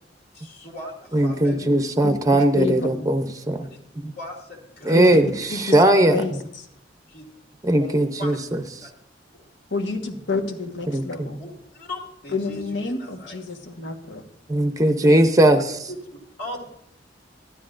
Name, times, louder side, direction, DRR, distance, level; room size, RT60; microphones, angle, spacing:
voice 1, 0.3-1.6 4.1-5.0 7.1-7.3 7.8-7.9 8.2-8.4 8.8-8.9 9.4-9.5 11.4-13.4 16.1-16.7, left 1 dB, 60° left, 0 dB, 2.4 m, -38 dB
voice 2, 1.1-3.7 4.0-4.1 4.8-6.2 7.6-8.6 10.9-11.3 14.5-15.7, right 1 dB, 20° right, 8 dB, 0.6 m, -19 dB
voice 3, 2.0-2.9 4.9-5.2 5.5-6.7 9.7-11.4 12.3-14.2, left 3 dB, 75° left, 4 dB, 1.3 m, -29 dB
13.5 x 12.0 x 2.5 m, 0.71 s
head